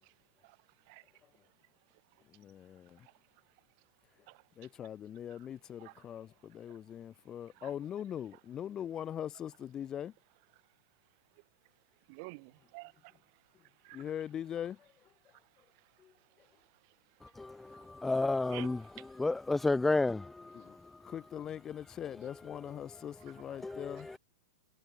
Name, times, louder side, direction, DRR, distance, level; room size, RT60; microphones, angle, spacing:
voice 1, 0.4-1.1 1.9-3.5 4.3-4.5 5.8-6.0 6.7-6.8 7.5-7.7 11.3-11.4 12.1-14.0 15.2-18.1 18.5-18.7 19.0-19.2, right 31 dB, 50° right, 4.6 m, -54 dB
voice 2, 2.2-3.1 4.6-10.1 13.9-15.7 16.0-16.5 20.5-24.1, left 9 dB, 25° left, 3.8 m, -42 dB
voice 3, 17.2-18.8 19.2-21.1 23.6-24.2, left 2 dB, 5° left, 1.2 m, -32 dB
hypercardioid pair, 115°, 2 cm